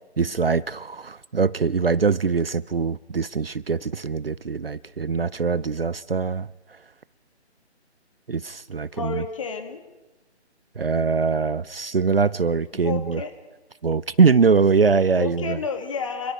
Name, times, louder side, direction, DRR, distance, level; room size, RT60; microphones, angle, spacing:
voice 1, 0.2-6.5 8.3-9.2 10.8-13.2 13.8-15.6, right 5 dB, 55° right, 0.7 m, -22 dB
voice 2, 8.9-9.8 12.8-13.3 15.1-16.3, left 5 dB, 30° left, 2.5 m, -31 dB
29.5 x 23.0 x 4.9 m
figure-of-eight pair, 150°, 34 cm